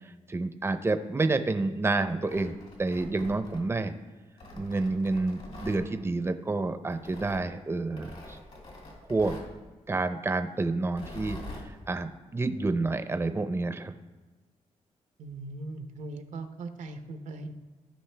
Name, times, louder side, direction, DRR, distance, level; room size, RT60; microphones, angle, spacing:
voice 1, 0.0-3.9 4.5-8.4 9.1-9.4 9.9-11.4 11.6-14.0, right 3 dB, 20° right, 9 dB, 0.6 m, -29 dB
Tearing, 2.1-3.9 4.4-5.8 6.9-7.4 8.0-9.5 10.8-11.7, left 1 dB, 60° left, 2.6 m, -44 dB
voice 2, 15.2-17.5, right 2 dB, 80° right, 7 dB, 0.7 m, -39 dB
15.5 x 5.4 x 3.3 m, 1.2 s
cardioid pair, 80°, 12 cm